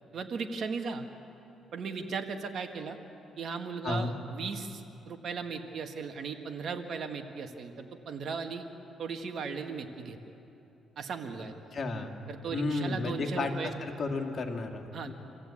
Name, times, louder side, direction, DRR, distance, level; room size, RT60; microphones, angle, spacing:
voice 1, 0.1-1.1 1.7-3.0 3.4-8.7 9.0-10.2 11.0-11.5 12.3-13.7 14.9-15.1, right 5 dB, 60° right, 5 dB, 1.7 m, -37 dB
voice 2, 11.7-12.2 12.5-15.1, left 3 dB, 45° left, 2 dB, 2.4 m, -33 dB
27.0 x 15.0 x 8.7 m, 2.9 s
cardioid pair, 90°, 0 cm